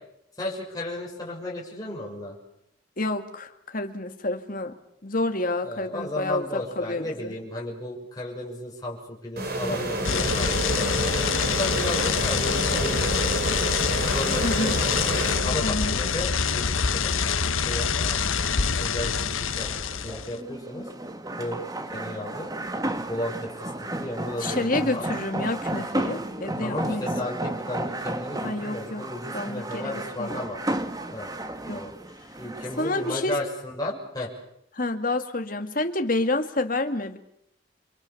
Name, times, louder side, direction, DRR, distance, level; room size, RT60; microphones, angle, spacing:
voice 1, 0.4-2.3 5.6-11.1 11.5-13.0 14.1-14.9 15.4-18.2 18.8-20.9 21.4-21.6 21.9-22.5 23.1-23.7 24.0-25.0 26.6-30.6 31.1-31.3 31.7-31.9 32.4-34.3, left 1 dB, 20° left, -3 dB, 6.5 m, -34 dB
voice 2, 3.0-4.8 5.0-7.3 10.1-10.3 14.4-14.7 15.6-15.9 24.4-27.1 28.4-29.1 29.3-30.4 31.7-31.8 32.8-33.4 34.7-37.2, left 2 dB, 45° left, 7 dB, 2.1 m, -29 dB
sound 1, 9.4-16.0, right 1 dB, 50° right, 4.2 m, -30 dB
sound 2, 10.0-20.3, left 6 dB, 85° left, 1.2 m, -25 dB
sound 3, 19.5-33.2, right 1 dB, 20° right, 1.6 m, -33 dB
29.0 x 24.5 x 7.1 m, 0.79 s
head